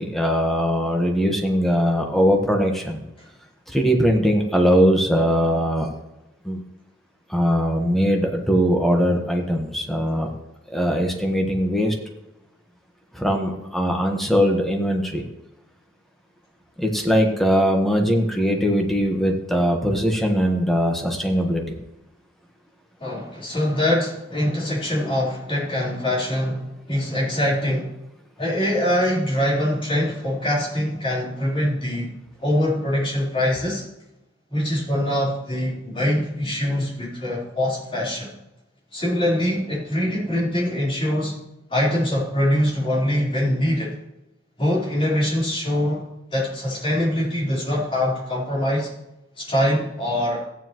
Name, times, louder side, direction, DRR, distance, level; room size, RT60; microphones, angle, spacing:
voice 1, 0.0-3.0 3.7-5.9 6.4-6.6 7.3-10.3 10.7-11.9 13.1-15.2 16.8-21.6, equal, ahead, 1 dB, 1.2 m, -20 dB
voice 2, 23.0-27.9 28.4-32.2 32.4-33.8 34.5-38.4 38.9-41.4 41.7-43.9 44.6-48.9 49.4-50.4, left 1 dB, 30° left, -5 dB, 3.9 m, -23 dB
15.0 x 9.4 x 3.0 m, 0.91 s
head